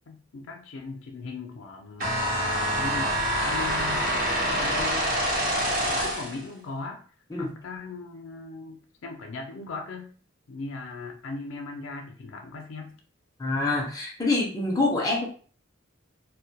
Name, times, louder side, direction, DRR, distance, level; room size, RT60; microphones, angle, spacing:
voice 1, 0.1-2.4 2.7-7.0 7.4-10.1 10.5-13.0, left 3 dB, 75° left, 3 dB, 0.5 m, -39 dB
sound 1, 2.0-6.4, equal, 45° right, 0.8 m, -26 dB
voice 2, 13.4-15.3, left 2 dB, 20° left, -2 dB, 0.5 m, -26 dB
2.1 x 2.1 x 2.8 m, 0.41 s
head